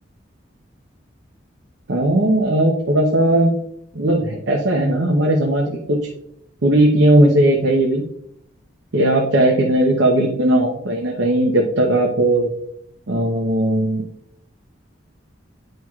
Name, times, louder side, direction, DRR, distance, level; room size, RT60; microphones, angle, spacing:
voice 1, 1.9-3.5 3.9-6.0 6.6-8.0 8.9-12.5 13.1-14.0, right 1 dB, 75° right, 0 dB, 0.8 m, -17 dB
9.0 x 4.7 x 2.4 m, 0.71 s
head